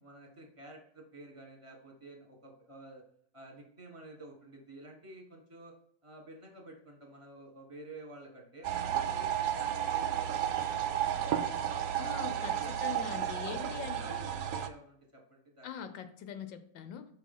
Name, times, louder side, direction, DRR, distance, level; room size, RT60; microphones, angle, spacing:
voice 1, 0.0-3.0 3.3-5.7 6.0-12.7 13.0-15.7, right 1 dB, 20° right, 1 dB, 1.2 m, -51 dB
sound 1, 8.6-14.7, right 10 dB, 70° right, 0.8 m, -32 dB
voice 2, 12.0-14.2 15.6-17.1, left 8 dB, 85° left, 9 dB, 1.5 m, -42 dB
5.3 x 3.8 x 5.3 m, 0.65 s
omnidirectional pair, 2.0 m